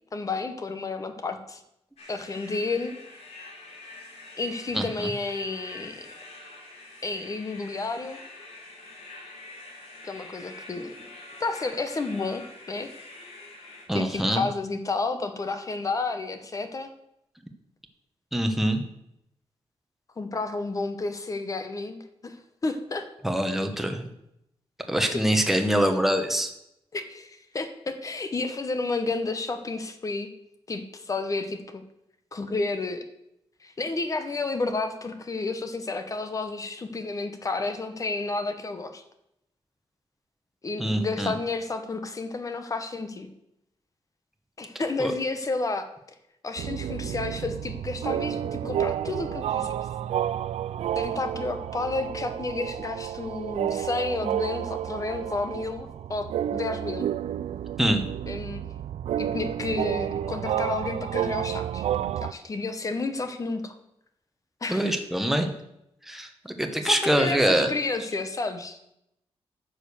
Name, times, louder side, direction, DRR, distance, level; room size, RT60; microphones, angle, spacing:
voice 1, 0.1-1.6 2.1-3.0 4.4-6.1 7.0-8.2 10.0-10.9 11.4-12.9 13.9-16.9 20.2-23.1 25.1-25.6 26.9-30.3 30.7-31.8 32.3-33.1 33.6-39.0 40.6-43.3 44.6-45.9 46.4-49.7 51.0-57.1 58.3-58.6 59.2-63.8 64.6-65.0 66.8-68.8, left 3 dB, 30° left, 8 dB, 0.9 m, -31 dB
sound 1, 2.0-13.9, left 2 dB, 80° left, 3.4 m, -46 dB
voice 2, 4.7-5.1 13.9-14.4 18.3-18.8 23.2-24.1 24.9-26.5 40.8-41.3 45.0-45.1 57.8-58.0 64.7-65.5 66.1-67.7, right 1 dB, 5° right, 5 dB, 1.1 m, -24 dB
sound 2, 46.6-62.3, right 10 dB, 90° right, 0.4 m, -30 dB
9.7 x 6.5 x 7.0 m, 0.80 s
wide cardioid pair, 165°, 11 cm